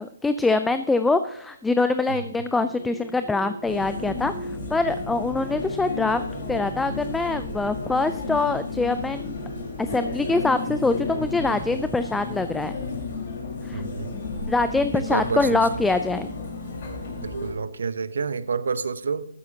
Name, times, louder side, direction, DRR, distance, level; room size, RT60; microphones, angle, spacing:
voice 1, 0.0-4.3 4.7-6.2 6.5-9.4 9.8-12.7 13.7-13.8 14.5-16.4, left 3 dB, 5° left, 10 dB, 0.4 m, -24 dB
sound 1, 2.4-15.2, equal, 30° right, 2.5 m, -42 dB
sound 2, 3.6-17.5, left 3 dB, 50° left, 4.5 m, -33 dB
voice 2, 13.7-14.2 14.9-15.8 17.2-19.3, right 5 dB, 65° right, 15 dB, 0.8 m, -29 dB
14.5 x 12.5 x 2.9 m, 0.71 s
figure-of-eight pair, 135°, 0 cm